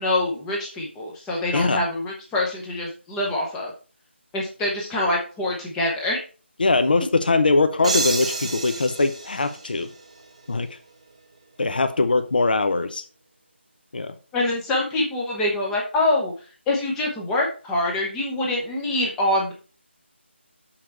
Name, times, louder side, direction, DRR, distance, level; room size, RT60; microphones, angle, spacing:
voice 1, 0.0-3.7 4.3-6.2 14.3-16.3 16.7-19.5, left 2 dB, 5° left, -2 dB, 0.7 m, -25 dB
voice 2, 6.6-9.9 10.5-10.7 11.6-13.0 13.9-14.1, left 3 dB, 50° left, 9 dB, 0.8 m, -21 dB
sound 1, 7.8-10.5, right 3 dB, 30° right, 1.0 m, -29 dB
6.6 x 5.8 x 4.5 m, 0.37 s
figure-of-eight pair, 175°, 7 cm